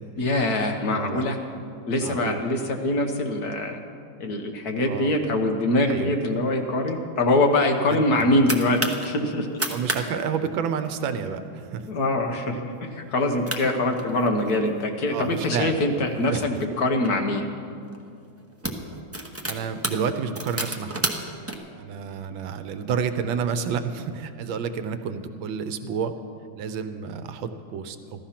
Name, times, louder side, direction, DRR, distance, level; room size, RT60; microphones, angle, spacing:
voice 1, 0.2-1.4 1.9-3.8 4.2-9.6 11.9-17.5 22.3-22.4, left 1 dB, 55° left, 3 dB, 1.5 m, -24 dB
voice 2, 0.9-1.2 2.0-2.4 4.9-5.1 5.9-6.1 7.9-8.5 9.7-11.9 15.1-16.4 19.5-21.0 21.8-26.1 26.5-28.3, right 6 dB, 85° right, 9 dB, 1.5 m, -30 dB
sound 1, 7.9-9.1 9.5-10.0 10.3-10.4 10.7-11.1 11.6-11.9 12.3-12.4 13.2-13.3 13.5-14.6 15.2-17.1 17.9-18.1 18.4-21.5, right 1 dB, 15° right, 0.4 m, -31 dB
15.0 x 13.0 x 5.8 m, 2.4 s
omnidirectional pair, 2.1 m